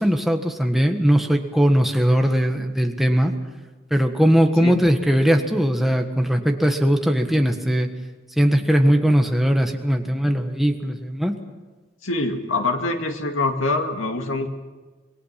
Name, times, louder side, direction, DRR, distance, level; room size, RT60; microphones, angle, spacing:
voice 1, 0.0-3.3 3.9-7.9 8.4-11.3, equal, ahead, 4 dB, 1.5 m, -19 dB
voice 2, 12.0-14.5, left 2 dB, 90° left, 4 dB, 2.3 m, -24 dB
26.5 x 20.0 x 5.9 m, 1.3 s
head